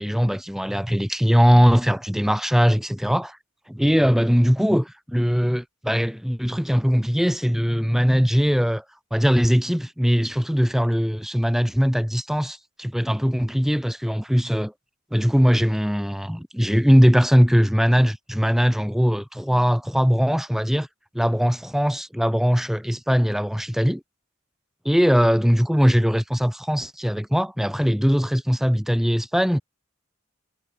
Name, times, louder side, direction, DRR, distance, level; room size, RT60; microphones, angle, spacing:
voice 1, 0.0-3.4 3.7-8.8 9.1-14.7 15.1-20.9 21.1-24.0 24.8-29.6, equal, ahead, 1.0 m, -20 dB
head